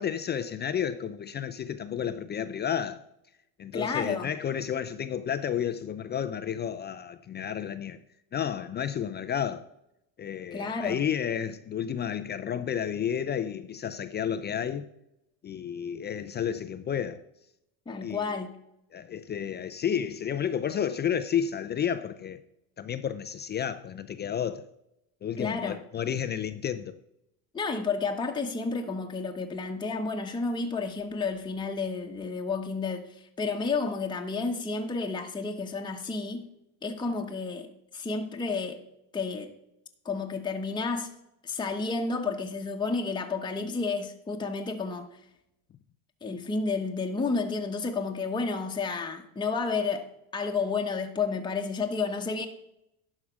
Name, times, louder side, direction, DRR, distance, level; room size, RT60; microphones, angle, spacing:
voice 1, 0.0-3.0 3.6-8.0 8.3-9.7 10.2-14.9 15.4-17.2 18.0-18.4 18.9-22.4 22.8-24.7 25.2-27.0, left 8 dB, 25° left, 0.3 m, -31 dB
voice 2, 3.7-4.3 10.5-11.0 17.9-18.5 25.4-25.8 27.5-36.5 36.8-38.8 39.1-39.5 40.0-41.1 41.4-45.2 46.2-52.5, left 4 dB, 10° left, 1.0 m, -31 dB
11.5 x 4.9 x 6.1 m
supercardioid pair, 105°, 47 cm